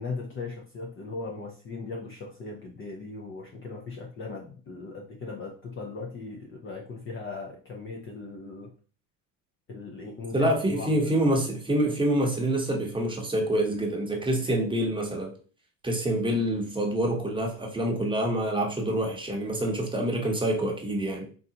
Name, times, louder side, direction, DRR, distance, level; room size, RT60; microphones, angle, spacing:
voice 1, 0.0-8.7 9.7-11.5, left 4 dB, 25° left, 0.6 m, -38 dB
voice 2, 10.3-15.3 15.8-21.3, right 1 dB, 10° right, 1.0 m, -26 dB
3.9 x 3.9 x 2.8 m
supercardioid pair, 120°, 48 cm